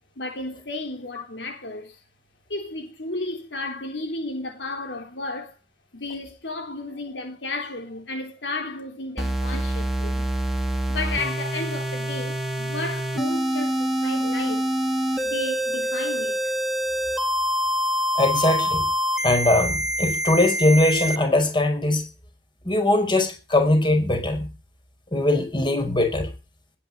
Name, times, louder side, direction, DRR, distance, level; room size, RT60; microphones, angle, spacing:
voice 1, 0.2-2.0 2.5-5.5 5.9-10.3 10.9-14.6 15.2-16.5, left 2 dB, 85° left, 3.6 m, -33 dB
sound 1, 9.2-21.2, equal, ahead, 2.4 m, -26 dB
voice 2, 18.2-18.8 19.2-22.0 22.7-24.5 25.1-26.3, left 1 dB, 30° left, 5.4 m, -21 dB
20.0 x 10.0 x 5.4 m
head